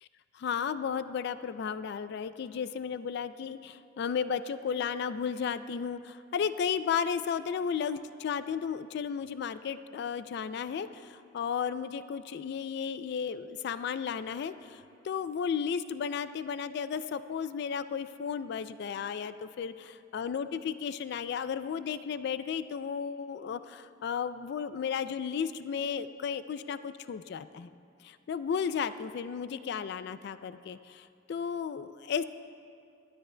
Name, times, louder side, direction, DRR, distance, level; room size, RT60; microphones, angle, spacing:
voice 1, 0.3-27.7 28.0-32.2, left 7 dB, 60° left, 13 dB, 0.3 m, -34 dB
19.5 x 12.5 x 2.2 m, 2.4 s
head